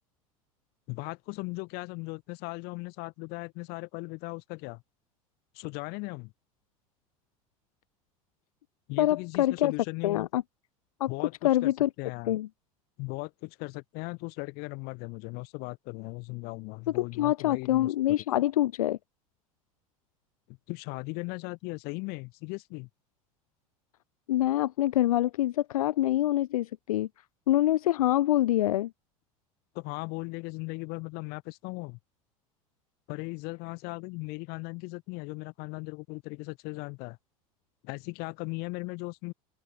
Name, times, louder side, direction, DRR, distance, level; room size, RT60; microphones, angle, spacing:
voice 1, 0.9-4.8 5.5-6.3 8.9-10.3 11.1-11.7 12.0-12.4 13.0-18.2 20.5-22.9 29.7-32.0 33.1-37.2 37.8-39.3, left 28 dB, 60° left, 7.4 m, -38 dB
voice 2, 9.0-9.7 10.0-10.4 11.0-11.1 11.4-11.9 12.3-12.5 16.9-19.0 24.3-27.1 27.5-28.9, left 14 dB, 85° left, 0.4 m, -25 dB
open air
hypercardioid pair, 80°, 18 cm